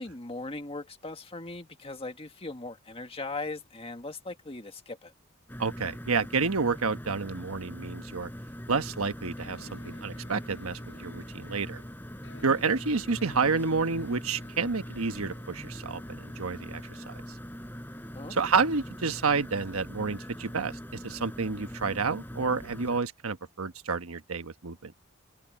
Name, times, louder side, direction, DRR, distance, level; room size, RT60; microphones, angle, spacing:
voice 1, 0.0-5.1 18.1-18.4, left 2 dB, 25° left, 1.8 m, -39 dB
sound 1, 5.5-23.0, equal, 10° left, 4.9 m, -42 dB
voice 2, 5.6-8.3 8.7-11.8 12.4-17.2 18.3-24.9, right 4 dB, 85° right, 1.2 m, -29 dB
sound 2, 9.4-17.0, left 2 dB, 60° left, 6.1 m, -54 dB
head